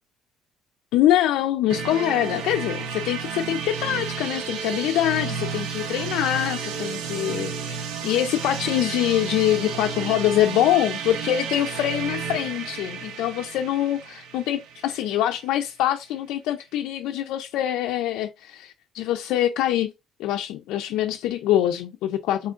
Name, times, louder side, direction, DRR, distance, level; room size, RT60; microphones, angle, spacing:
voice 1, 0.9-7.8 8.0-19.9 20.2-22.5, left 12 dB, 85° left, 0.4 m, -24 dB
sound 1, 1.7-15.4, right 6 dB, 80° right, 0.7 m, -32 dB
4.2 x 3.7 x 2.5 m
cardioid pair, 110°, 0 cm